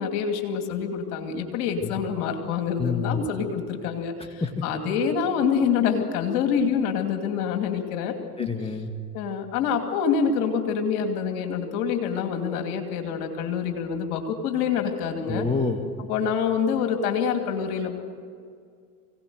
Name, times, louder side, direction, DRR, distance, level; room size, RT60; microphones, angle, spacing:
voice 1, 0.0-8.5 9.1-15.5 16.1-18.0, left 6 dB, 75° left, 5 dB, 2.7 m, -26 dB
voice 2, 2.8-3.2 4.4-4.5 8.4-8.9 15.3-15.8, left 4 dB, 15° left, 4 dB, 2.1 m, -27 dB
24.0 x 17.5 x 7.9 m, 2.2 s
hypercardioid pair, 75°, 44 cm